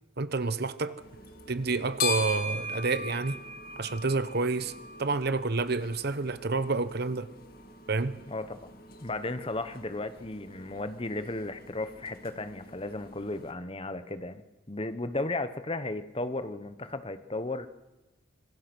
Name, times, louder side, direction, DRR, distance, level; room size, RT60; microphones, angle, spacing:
voice 1, 0.2-1.0 1.5-3.4 3.8-4.7 5.0-7.3 7.9-8.2, right 3 dB, 50° right, 1.0 m, -29 dB
sound 1, 1.0-13.5, left 2 dB, 45° left, 2.2 m, -40 dB
voice 2, 8.3-8.6 9.0-17.7, left 2 dB, 25° left, 1.0 m, -35 dB
25.5 x 22.0 x 6.2 m
head